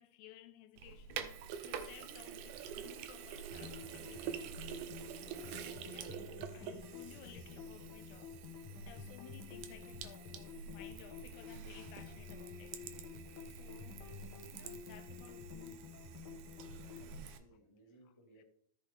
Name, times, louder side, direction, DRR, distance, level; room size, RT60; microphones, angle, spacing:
voice 1, 0.0-4.4 5.5-12.8 13.6-14.1 14.5-15.8 18.0-18.4, left 12 dB, 90° left, 2.1 m, -58 dB
Sink (filling or washing), 0.8-17.4, right 8 dB, 80° right, 2.2 m, -47 dB
sound 1, 3.5-17.2, left 5 dB, 45° left, 1.6 m, -50 dB
voice 2, 16.4-18.4, right 1 dB, 15° left, 1.1 m, -64 dB
13.5 x 6.5 x 3.6 m
omnidirectional pair, 3.5 m